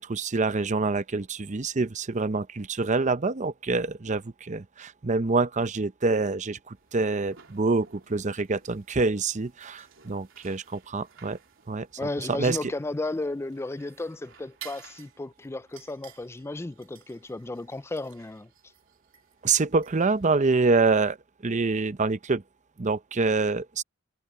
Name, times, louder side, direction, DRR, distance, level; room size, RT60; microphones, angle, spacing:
voice 1, 0.0-11.4 11.7-11.9 12.3-12.7 19.4-21.2 21.4-22.4 22.8-23.8, right 3 dB, 35° right, 0.7 m, -26 dB
sound 1, 6.7-20.7, right 8 dB, 65° right, 3.8 m, -54 dB
voice 2, 12.0-18.5, left 2 dB, 10° left, 0.3 m, -34 dB
head